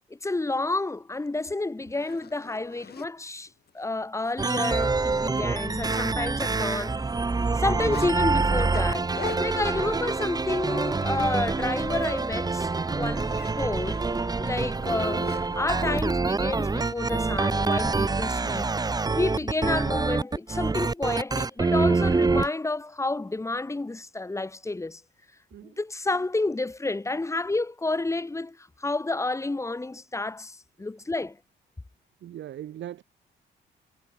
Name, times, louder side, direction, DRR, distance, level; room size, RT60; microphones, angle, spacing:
voice 1, 0.1-3.5 3.7-7.0 7.6-9.1 9.4-14.0 14.4-18.8 19.2-25.0 25.6-31.4, left 2 dB, 15° left, 1.5 m, -30 dB
Zipper (clothing), 1.3-1.4 1.8-3.1 3.7-3.8 4.2-4.3 4.7-4.8 5.1-6.5 6.7-8.1 8.5-11.5 11.8-12.1 12.5-16.1 17.1-17.8, left 8 dB, 55° left, 3.6 m, -43 dB
sound 1, 4.4-22.5, right 3 dB, 20° right, 0.9 m, -26 dB
voice 2, 32.2-33.0, right 11 dB, 70° right, 1.7 m, -39 dB
cardioid pair, 90°, 20 cm